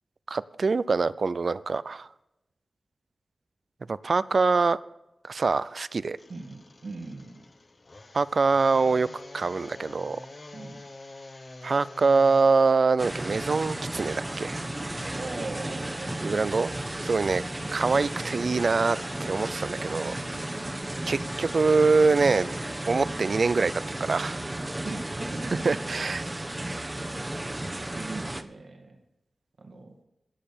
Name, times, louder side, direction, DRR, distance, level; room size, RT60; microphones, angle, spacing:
voice 1, 0.3-2.1 3.9-4.8 5.2-6.2 8.1-10.2 11.6-14.6 16.2-16.7 17.0-17.4 17.7-20.2 21.1-22.5 22.9-23.7 24.0-24.4 25.6-26.2, right 4 dB, 65° right, 16 dB, 0.5 m, -24 dB
sound 1, 6.2-12.4, left 2 dB, 55° left, 1.6 m, -47 dB
voice 2, 6.3-7.5 10.5-10.8 15.1-16.5 17.5-17.8 19.9-20.8 24.8-25.7 27.6-29.0 29.6-29.9, right 3 dB, 80° right, 2 dB, 2.4 m, -40 dB
sound 2, 13.0-28.4, right 1 dB, 20° right, 1.1 m, -34 dB
18.0 x 6.8 x 7.3 m, 0.92 s
wide cardioid pair, 65°, 0 cm